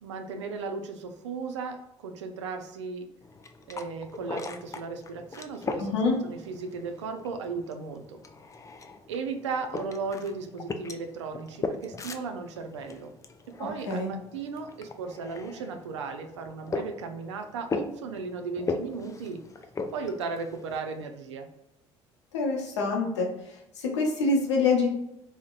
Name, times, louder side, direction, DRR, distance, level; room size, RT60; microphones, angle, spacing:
voice 1, 0.0-3.1 3.7-8.2 9.1-13.1 13.5-19.4 19.9-21.5, right 4 dB, 85° right, 6 dB, 0.4 m, -36 dB
sound 1, 3.2-21.0, left 3 dB, 20° left, 0.4 m, -39 dB
voice 2, 5.8-6.2 13.6-14.1 22.3-23.3 23.8-24.9, left 3 dB, 85° left, 0 dB, 0.7 m, -26 dB
3.8 x 2.1 x 2.4 m, 0.86 s
hypercardioid pair, 60°, 15 cm